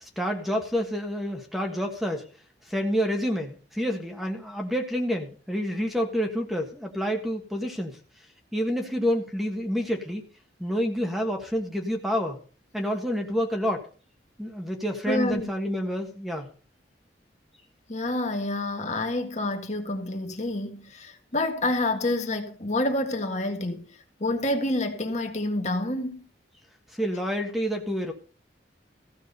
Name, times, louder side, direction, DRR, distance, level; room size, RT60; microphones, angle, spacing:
voice 1, 0.0-2.3 2.6-8.0 8.5-10.3 10.6-12.4 12.7-13.9 14.4-16.5 26.9-28.1, equal, ahead, 1.5 m, -28 dB
voice 2, 15.1-15.5 17.9-23.8 24.2-26.2, left 2 dB, 40° left, 1.8 m, -28 dB
15.5 x 6.1 x 6.8 m
head